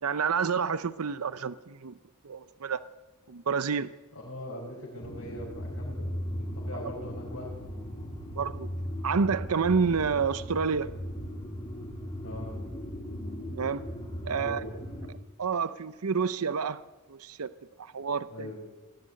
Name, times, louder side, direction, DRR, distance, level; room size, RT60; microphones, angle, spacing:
voice 1, 0.0-2.0 2.2-2.8 3.3-3.9 8.4-8.7 9.0-10.9 13.6-13.8 14.2-14.6 15.4-16.8 17.1-17.5 17.8-18.5, right 5 dB, 80° right, 14 dB, 0.7 m, -29 dB
voice 2, 4.2-7.5 12.2-12.6 14.2-14.7 15.1-15.2 18.3-18.6, left 1 dB, 65° left, -5 dB, 5.4 m, -41 dB
sound 1, 5.0-15.1, equal, 25° left, 3.4 m, -37 dB
20.0 x 14.5 x 9.4 m, 1.2 s
head